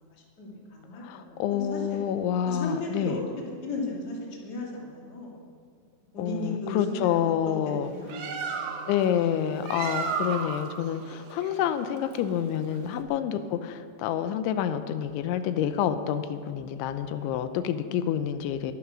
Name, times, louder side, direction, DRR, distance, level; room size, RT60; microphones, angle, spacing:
voice 1, 0.4-2.0 2.5-5.4 6.1-7.5 7.9-8.2 8.5-8.8, left 2 dB, 25° left, -3 dB, 2.5 m, -35 dB
voice 2, 0.9-3.2 6.2-7.9 8.9-18.7, left 9 dB, 90° left, 10 dB, 3.1 m, -28 dB
Bird, 7.8-13.0, right 5 dB, 75° right, 1.9 m, -35 dB
23.0 x 9.4 x 6.2 m, 2.1 s
omnidirectional pair, 5.2 m